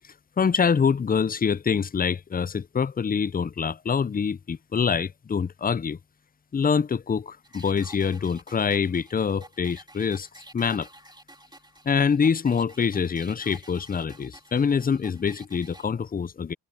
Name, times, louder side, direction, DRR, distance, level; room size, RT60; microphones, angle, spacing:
voice 1, 0.4-6.0 6.5-10.3 10.5-10.9 11.9-16.5, left 6 dB, 20° left, 0.5 m, -25 dB
sound 1, 7.4-15.9, right 1 dB, 10° right, 2.2 m, -50 dB
cardioid pair, 65°, 44 cm